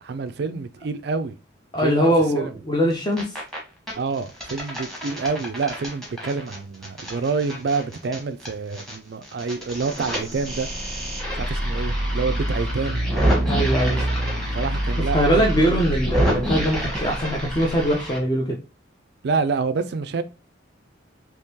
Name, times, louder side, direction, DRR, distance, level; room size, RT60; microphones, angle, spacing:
voice 1, 0.0-1.3 1.8-2.6 4.0-10.7 11.3-13.1 13.8-14.0 14.5-15.6 19.2-20.2, right 4 dB, 55° right, 0.4 m, -27 dB
voice 2, 1.7-3.4 13.4-14.0 15.1-18.6, equal, 20° left, 0.5 m, -21 dB
sound 1, 2.9-3.6 3.9-9.0 9.2-18.2, equal, ahead, 1.2 m, -29 dB
sound 2, 10.3-17.9, right 1 dB, 45° left, 1.1 m, -27 dB
3.6 x 2.9 x 2.8 m
head